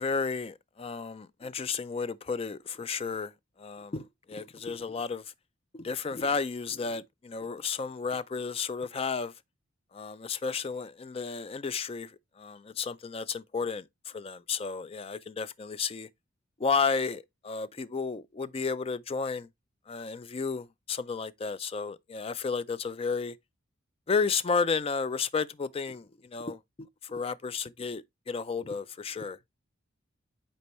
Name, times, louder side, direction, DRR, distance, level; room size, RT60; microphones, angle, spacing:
voice 1, 0.0-3.3 3.6-5.2 5.7-9.3 9.9-12.1 12.4-13.8 14.1-16.1 16.6-19.5 19.9-23.3 24.1-26.1 26.3-29.4, left 5 dB, 30° left, 0.4 m, -32 dB
8.3 x 4.4 x 3.0 m
head